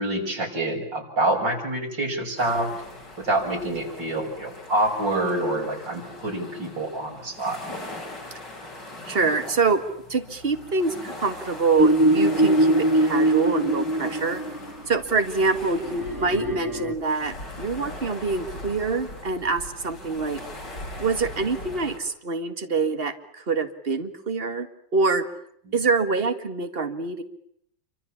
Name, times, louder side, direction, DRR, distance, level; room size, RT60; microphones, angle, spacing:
voice 1, 0.0-2.7 3.2-7.6, right 2 dB, 85° right, 2 dB, 6.9 m, -26 dB
sound 1, 2.4-22.0, left 1 dB, 70° left, 6.8 m, -40 dB
voice 2, 9.0-9.8 10.1-14.4 14.9-20.4 21.0-25.3 25.7-27.2, right 4 dB, 30° right, 8 dB, 2.1 m, -25 dB
sound 2, 11.8-14.7 15.7-16.9, right 1 dB, 10° right, 2.1 m, -22 dB
28.0 x 25.5 x 7.2 m, 0.71 s
omnidirectional pair, 1.9 m